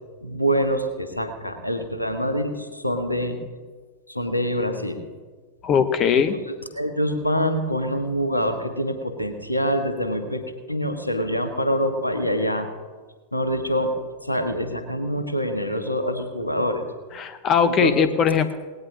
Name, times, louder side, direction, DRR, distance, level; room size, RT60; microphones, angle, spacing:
voice 1, 0.2-3.4 4.1-5.0 6.1-10.4 10.7-12.7 13.3-13.9 14.2-16.9 17.8-18.1, equal, 85° left, 7 dB, 1.4 m, -25 dB
voice 2, 5.6-6.4 17.1-18.5, left 7 dB, 30° left, 11 dB, 0.9 m, -20 dB
19.0 x 17.5 x 2.8 m, 1.4 s
figure-of-eight pair, 90°, 0 cm